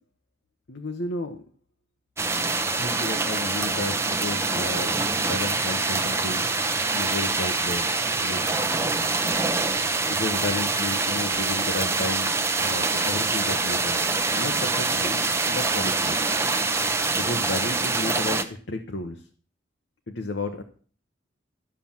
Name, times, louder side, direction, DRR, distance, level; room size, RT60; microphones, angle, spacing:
voice 1, 0.7-1.4 2.7-6.6 6.9-7.9 8.1-8.5 10.1-16.2 17.1-19.3 20.1-20.6, left 2 dB, 70° left, 5 dB, 1.0 m, -33 dB
sound 1, 2.2-18.4, right 3 dB, 15° right, 0.7 m, -25 dB
12.5 x 5.9 x 7.2 m, 0.43 s
head